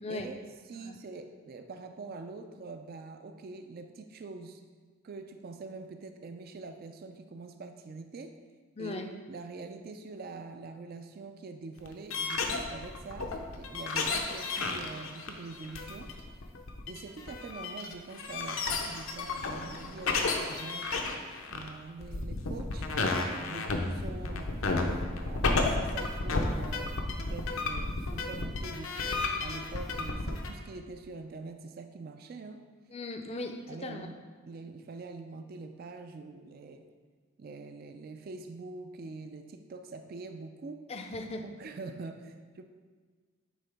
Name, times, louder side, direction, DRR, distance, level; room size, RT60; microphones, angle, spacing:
voice 1, 0.1-4.6 5.0-8.4 8.8-9.0 9.3-16.1 16.9-21.0 21.5-24.5 25.2-32.6 33.7-34.1 34.5-36.9 37.4-40.9 41.4-42.6, right 3 dB, 45° right, 7 dB, 0.3 m, -44 dB
voice 2, 8.8-9.1 32.9-33.6 33.8-34.1 40.9-41.4, left 2 dB, 30° left, 6 dB, 0.4 m, -38 dB
sound 1, 11.8-30.5, left 3 dB, 75° left, 0.6 m, -32 dB
9.1 x 3.7 x 3.4 m, 1.5 s
head